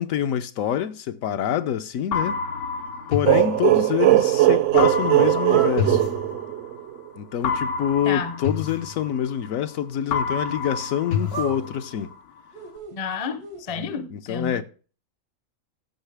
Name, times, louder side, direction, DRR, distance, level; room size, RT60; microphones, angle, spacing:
voice 1, 0.0-2.4 3.1-6.1 7.2-12.1 13.8-14.6, left 10 dB, 70° left, 1.0 m, -26 dB
sound 1, 2.1-4.2 4.8-6.9 7.4-9.7 10.1-12.2, left 5 dB, 90° left, 1.4 m, -29 dB
sound 2, 3.3-7.0, right 15 dB, 65° right, 0.8 m, -19 dB
sound 3, 5.3-5.8 11.1-12.1 12.5-12.9 13.4-13.6, right 6 dB, 85° right, 2.1 m, -35 dB
voice 2, 8.0-8.4 12.9-14.6, left 6 dB, 35° left, 0.6 m, -31 dB
14.5 x 6.4 x 3.4 m
omnidirectional pair, 1.6 m